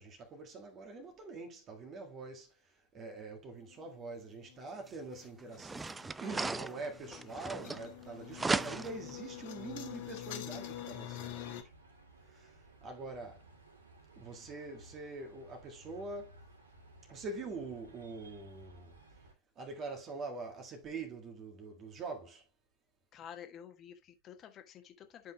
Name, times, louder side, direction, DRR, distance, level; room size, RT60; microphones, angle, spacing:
voice 1, 0.0-5.9 6.2-11.6 12.2-13.5 14.1-16.4 17.1-19.0 19.5-22.4, right 3 dB, 30° right, 1.6 m, -44 dB
sound 1, 3.7-11.6, left 12 dB, 50° left, 1.4 m, -47 dB
sound 2, 4.9-5.0 5.5-8.0 8.3-9.1, right 3 dB, 10° right, 0.3 m, -36 dB
sound 3, 7.6-19.3, right 1 dB, 75° right, 2.0 m, -59 dB
voice 2, 23.1-25.3, left 9 dB, 30° left, 1.4 m, -51 dB
11.0 x 5.6 x 2.2 m
figure-of-eight pair, 90°, 0 cm